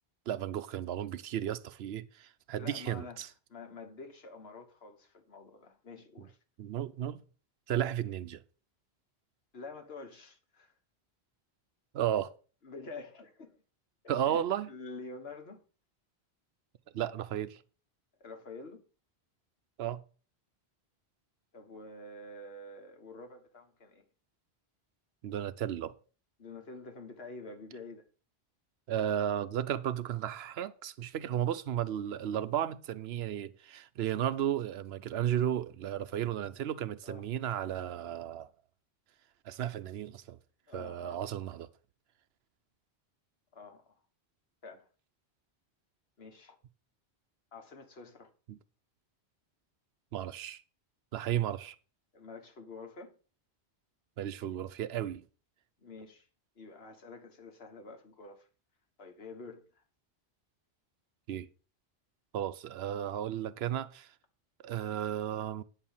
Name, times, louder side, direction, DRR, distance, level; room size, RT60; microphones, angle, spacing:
voice 1, 0.3-3.3 6.6-7.2 7.7-8.4 11.9-12.3 14.1-14.7 16.9-17.6 19.8-20.0 25.2-25.9 28.9-38.5 39.4-40.4 40.7-41.7 48.5-48.6 50.1-50.6 51.1-51.8 54.2-55.2 61.3-61.5 62.3-64.1 64.6-65.6, right 10 dB, 75° right, 0.8 m, -34 dB
voice 2, 2.6-3.2 3.5-6.4 9.5-10.7 12.6-13.6 14.0-15.6 18.2-18.8 21.5-24.0 26.4-28.1 37.0-37.2 40.7-41.2 43.5-44.0 44.6-44.9 46.2-46.6 47.5-48.3 52.1-53.2 55.8-56.3 56.6-58.5 59.0-59.7, left 3 dB, 70° left, 1.6 m, -48 dB
9.1 x 4.5 x 7.2 m
omnidirectional pair, 1.1 m